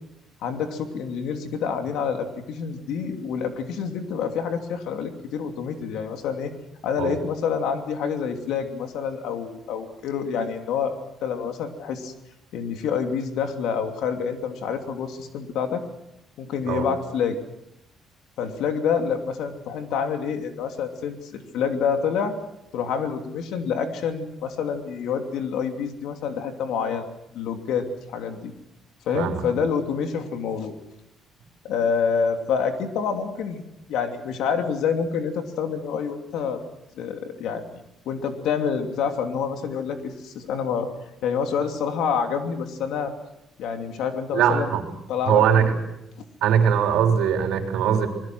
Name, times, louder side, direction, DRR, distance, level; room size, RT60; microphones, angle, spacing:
voice 1, 0.4-6.5 6.8-12.1 12.5-15.8 16.4-17.4 18.4-22.4 22.7-27.1 27.3-28.5 29.1-30.7 31.6-33.6 33.9-36.6 36.9-40.9 41.2-43.1 43.6-44.7 45.1-45.7, left 6 dB, 80° left, 5 dB, 2.9 m, -27 dB
voice 2, 44.3-44.9 45.3-45.7 46.4-48.1, right 8 dB, 85° right, 3 dB, 3.8 m, -21 dB
26.5 x 20.5 x 6.3 m, 0.86 s
cardioid pair, 175°, 0 cm